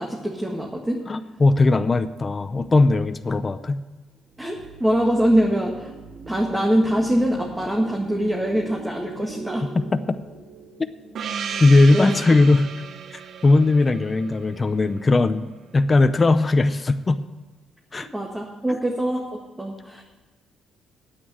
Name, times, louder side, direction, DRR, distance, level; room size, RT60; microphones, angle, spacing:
voice 1, 0.0-1.0 4.4-5.9 6.3-9.7 11.5-11.6 11.9-12.1 18.1-20.0, equal, 10° right, -1 dB, 1.7 m, -23 dB
voice 2, 1.1-3.8 9.6-10.2 11.6-12.7 13.4-17.2 17.9-18.1, left 2 dB, 30° left, 10 dB, 0.6 m, -19 dB
sound 1, 4.3-12.7, right 2 dB, 40° right, 3.4 m, -40 dB
Gong, 11.1-15.5, right 7 dB, 60° right, 0.7 m, -35 dB
9.3 x 8.3 x 8.0 m, 1.2 s
cardioid pair, 90°, 0 cm